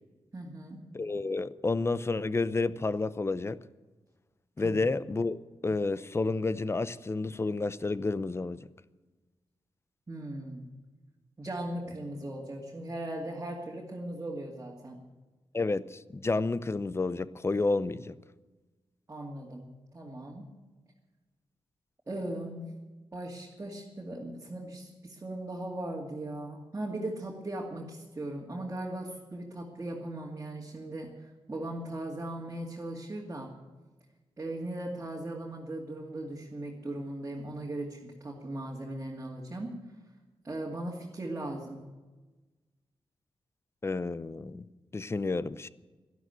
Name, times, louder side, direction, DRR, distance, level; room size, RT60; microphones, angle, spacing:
voice 1, 0.3-0.8 4.6-4.8 10.1-10.6 11.4-15.0 19.1-19.7 19.9-20.5 22.1-22.7 23.1-33.5 34.4-39.7 40.4-41.8, right 1 dB, 25° right, -2 dB, 2.4 m, -38 dB
voice 2, 0.9-3.6 4.6-5.4 5.6-8.7 15.5-18.2 43.8-44.6 44.9-45.7, left 3 dB, 25° left, 16 dB, 0.6 m, -30 dB
12.5 x 12.0 x 9.2 m, 1.2 s
wide cardioid pair, 105°, 10 cm